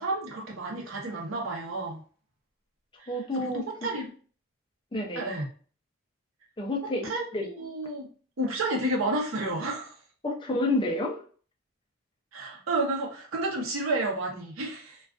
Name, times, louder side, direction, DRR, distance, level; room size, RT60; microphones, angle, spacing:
voice 1, 0.0-2.0 3.0-4.1 5.1-5.5 7.0-7.2 7.6-8.1 8.4-10.0 12.3-15.0, right 2 dB, 80° right, 0 dB, 0.7 m, -31 dB
voice 2, 3.1-3.6 4.9-5.4 6.6-7.4 10.2-11.2, left 1 dB, 25° left, 0 dB, 0.4 m, -29 dB
2.3 x 2.3 x 2.3 m, 0.42 s
head